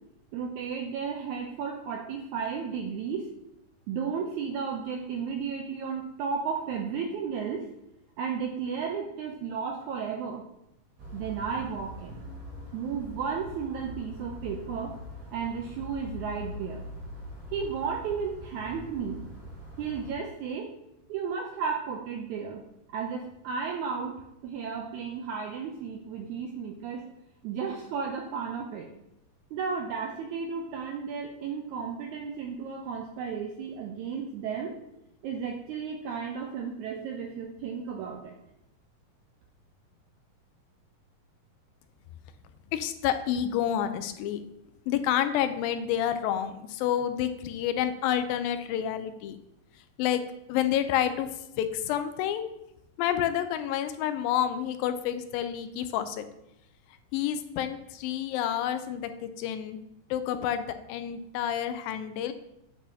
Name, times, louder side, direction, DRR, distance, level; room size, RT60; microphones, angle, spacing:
voice 1, 0.3-3.3 3.9-7.6 8.2-10.4 11.1-12.2 12.7-15.0 15.3-16.8 17.5-19.3 19.8-20.7 21.1-22.6 22.9-27.1 27.4-28.9 29.5-34.7 35.2-38.4, right 6 dB, 90° right, 1 dB, 1.7 m, -33 dB
sound 1, 11.0-20.1, left 1 dB, 70° right, 3.4 m, -43 dB
voice 2, 42.7-44.4 44.9-49.4 50.0-50.2 50.5-51.3 51.6-52.5 53.0-56.3 57.1-59.8 60.1-62.3, left 10 dB, 90° left, 10 dB, 2.3 m, -29 dB
8.4 x 6.2 x 2.7 m, 0.84 s
omnidirectional pair, 4.0 m